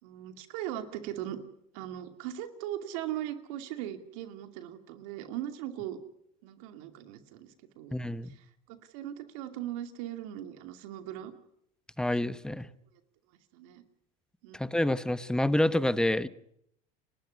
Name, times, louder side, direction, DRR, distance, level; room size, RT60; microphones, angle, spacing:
voice 1, 0.0-1.4 1.7-6.0 6.4-8.0 8.7-11.3 13.5-13.8 14.4-14.6, right 12 dB, 80° right, 8 dB, 2.5 m, -39 dB
voice 2, 7.9-8.3 12.0-12.7 14.5-16.3, left 1 dB, 5° left, 14 dB, 1.1 m, -28 dB
30.0 x 13.0 x 9.5 m, 0.74 s
supercardioid pair, 105°, 18 cm